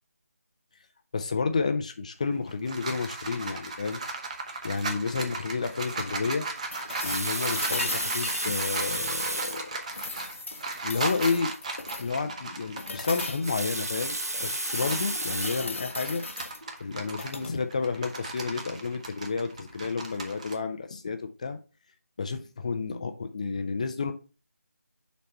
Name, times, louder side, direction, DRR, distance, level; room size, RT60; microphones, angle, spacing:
voice 1, 1.1-4.0 4.6-6.5 7.0-9.8 10.8-11.5 12.0-16.2 16.8-21.6 22.2-24.1, left 4 dB, 25° left, 8 dB, 0.5 m, -31 dB
sound 1, 2.3-15.2 15.6-20.5, right 3 dB, 25° right, 0.7 m, -37 dB
sound 2, 6.7-9.5 9.9-12.2 12.8-13.6 14.0-16.6 17.1-17.5 19.6-19.7, left 3 dB, 55° left, 0.8 m, -37 dB
Water tap faucet, 6.8-9.7 10.5-10.6 10.9-11.0 13.2-15.8 16.5-16.7, right 1 dB, 85° right, 1.0 m, -32 dB
5.6 x 4.1 x 4.4 m, 0.33 s
figure-of-eight pair, 160°, 8 cm